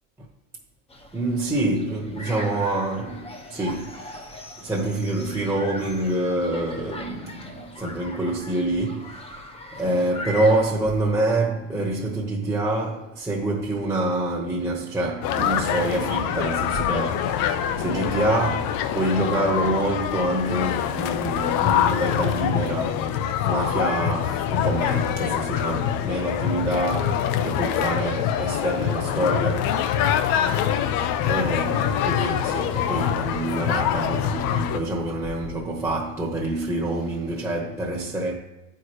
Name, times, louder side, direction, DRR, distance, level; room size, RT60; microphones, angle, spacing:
sound 1, 0.9-10.6, left 1 dB, 15° left, 0.9 m, -40 dB
voice 1, 1.1-4.3 4.6-9.3 9.7-23.1 23.4-29.8 30.5-38.4, right 1 dB, 5° right, 1.2 m, -26 dB
sound 2, 15.2-34.8, left 9 dB, 60° left, 0.7 m, -24 dB
11.5 x 4.6 x 3.2 m
supercardioid pair, 105°, 39 cm